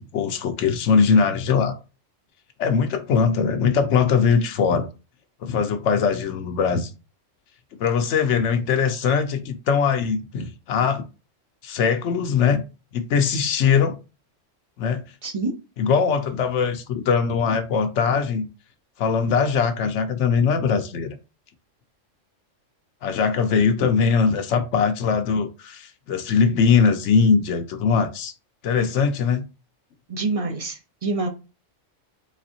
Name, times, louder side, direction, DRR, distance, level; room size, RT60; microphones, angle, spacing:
voice 1, 0.0-1.7 2.6-4.9 5.4-6.9 7.8-11.0 11.6-12.6 12.9-14.0 14.8-15.0 15.8-18.5 19.0-21.1 23.0-28.3 28.6-29.4, left 6 dB, 75° left, 0.9 m, -21 dB
voice 2, 15.2-15.5 30.1-31.3, right 3 dB, 35° right, 0.6 m, -26 dB
4.1 x 3.3 x 2.7 m
omnidirectional pair, 1.3 m